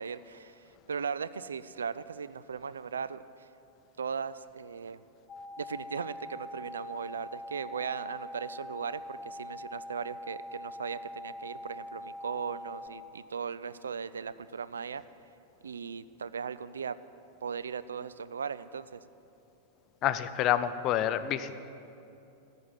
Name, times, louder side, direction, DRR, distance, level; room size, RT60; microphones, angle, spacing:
voice 1, 0.0-3.5 4.0-5.0 5.6-15.0 15.6-17.0 17.4-19.0, right 6 dB, 70° right, 15 dB, 0.3 m, -38 dB
sound 1, 5.3-12.9, left 1 dB, 15° left, 0.9 m, -43 dB
voice 2, 20.0-21.5, left 11 dB, 35° left, 13 dB, 0.5 m, -28 dB
14.0 x 5.9 x 9.3 m, 2.8 s
figure-of-eight pair, 90°, 0 cm